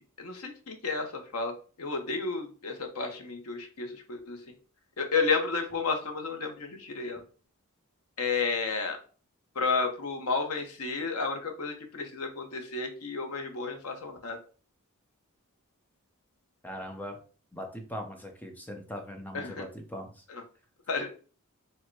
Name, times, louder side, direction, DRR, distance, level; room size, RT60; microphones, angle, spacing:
voice 1, 0.0-1.5 1.8-4.4 5.0-7.2 8.2-9.0 9.6-14.4 19.3-19.6 20.3-20.4 20.9-21.1, left 4 dB, 80° left, 4 dB, 0.8 m, -32 dB
voice 2, 16.6-17.2 17.5-20.1, equal, 10° left, 3 dB, 0.6 m, -40 dB
4.4 x 2.2 x 4.5 m, 0.39 s
head